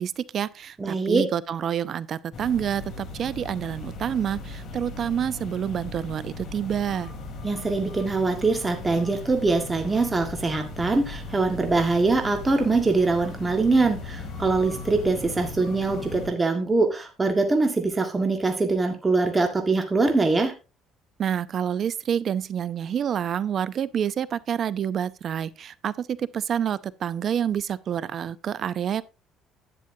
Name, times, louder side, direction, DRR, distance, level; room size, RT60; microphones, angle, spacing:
voice 1, 0.0-7.1 21.2-29.0, right 9 dB, 50° right, 0.5 m, -28 dB
voice 2, 0.8-1.2 7.4-20.5, right 3 dB, 20° right, 1.7 m, -23 dB
sound 1, 2.3-16.3, left 2 dB, 45° left, 2.7 m, -38 dB
11.0 x 10.0 x 2.7 m
cardioid pair, 115°, 0 cm